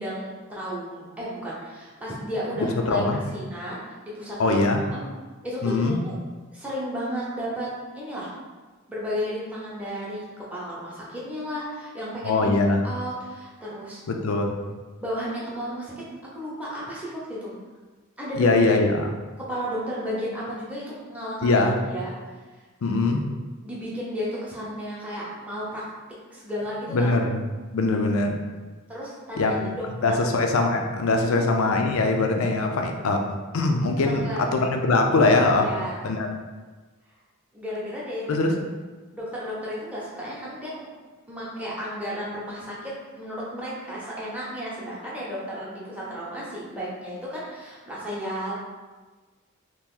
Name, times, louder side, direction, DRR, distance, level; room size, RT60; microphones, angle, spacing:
voice 1, 0.0-3.0 3.3-3.8 4.0-4.6 4.9-5.0 5.4-6.1 6.5-7.7 7.9-8.3 8.9-12.5 12.8-14.0 15.0-15.9 16.3-17.5 18.2-18.5 19.4-21.6 21.9-22.1 23.6-25.8 26.3-27.1 28.9-30.2 31.3-31.4 34.1-34.4 35.6-36.0 37.5-38.4 39.1-40.9 41.3-48.5, equal, 5° right, -7 dB, 0.7 m, -33 dB
voice 2, 2.6-3.2 4.4-4.8 5.6-6.0 12.2-12.8 14.1-14.5 18.4-19.1 21.4-21.8 22.8-23.2 26.9-27.4 27.7-28.3 29.4-29.7 30.0-33.2 33.5-35.7 36.0-36.3 38.3-38.5, left 2 dB, 75° left, 3 dB, 0.4 m, -22 dB
2.9 x 2.6 x 3.7 m, 1.3 s
head